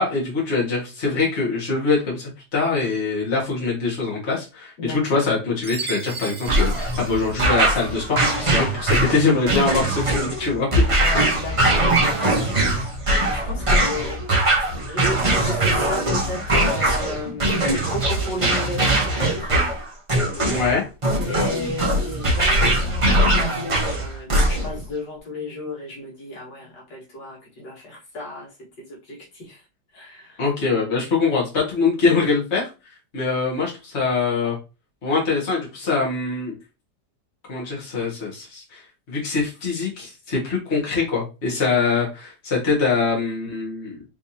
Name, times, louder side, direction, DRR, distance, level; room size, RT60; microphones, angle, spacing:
voice 1, 0.0-10.7 20.5-20.9 30.4-32.7 33.1-34.6 35.0-36.6 37.5-44.0, left 4 dB, 40° left, 2.0 m, -23 dB
voice 2, 4.8-5.2 10.9-14.2 14.9-19.6 21.2-29.6 29.9-30.4, left 2 dB, 75° left, 2.5 m, -34 dB
Chime, 5.6-8.0, right 4 dB, 55° right, 0.6 m, -36 dB
sound 1, 6.5-24.8, right 1 dB, 25° right, 0.8 m, -21 dB
4.6 x 3.5 x 2.8 m
omnidirectional pair, 1.9 m